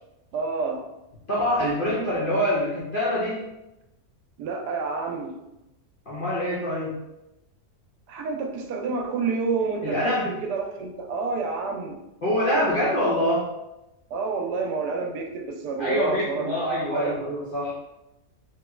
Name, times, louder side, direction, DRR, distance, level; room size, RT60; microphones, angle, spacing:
voice 1, 0.3-0.9 4.4-5.4 8.1-12.0 14.1-16.6 16.9-17.2, right 4 dB, 85° right, 3 dB, 1.1 m, -29 dB
voice 2, 1.3-3.5 6.1-7.0 9.8-10.3 12.2-13.5 15.8-17.7, equal, 50° left, -8 dB, 0.6 m, -25 dB
3.2 x 2.9 x 2.4 m, 0.93 s
omnidirectional pair, 1.7 m